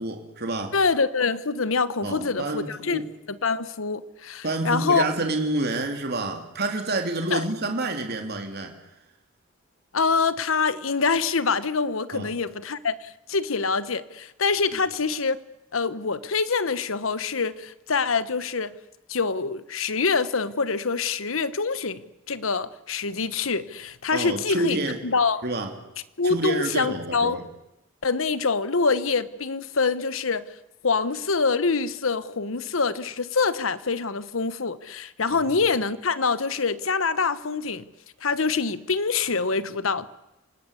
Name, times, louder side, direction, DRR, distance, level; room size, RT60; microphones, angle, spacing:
voice 1, 0.0-0.7 2.0-3.1 4.4-8.7 12.1-12.3 24.1-25.0 25.4-25.7 26.2-27.4 35.4-35.5, right 2 dB, 55° right, 3.1 m, -28 dB
voice 2, 0.7-3.0 3.3-5.0 7.3-7.4 9.9-15.4 15.7-18.7 19.1-24.8 25.0-25.4 26.2-27.4 28.0-30.5 30.8-37.8 38.2-40.1, left 4 dB, 80° left, 1.1 m, -25 dB
28.0 x 19.0 x 8.4 m
head